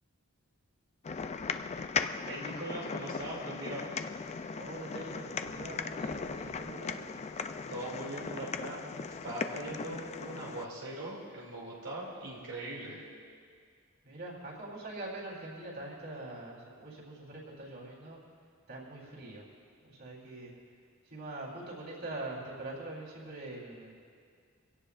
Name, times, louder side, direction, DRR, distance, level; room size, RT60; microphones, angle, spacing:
sound 1, 1.0-10.7, left 5 dB, 30° left, 0.4 m, -38 dB
voice 1, 2.3-3.9 7.7-13.0, right 1 dB, 85° right, -4 dB, 2.8 m, -41 dB
voice 2, 4.5-7.0 12.7-13.0 14.0-18.2 18.7-19.5 19.8-20.5 21.0-23.9, right 2 dB, 55° right, -4 dB, 3.7 m, -43 dB
24.0 x 17.0 x 2.5 m, 2.1 s
head